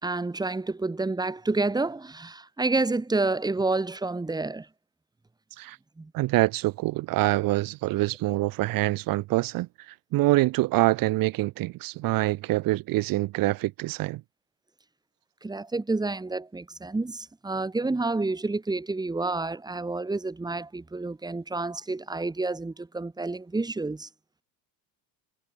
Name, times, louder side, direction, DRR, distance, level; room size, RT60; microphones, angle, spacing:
voice 1, 0.0-4.7 6.0-6.1 15.4-24.1, right 3 dB, 10° right, 3.9 m, -29 dB
voice 2, 6.1-14.2, right 18 dB, 55° right, 2.4 m, -25 dB
cardioid pair, 130°, 40 cm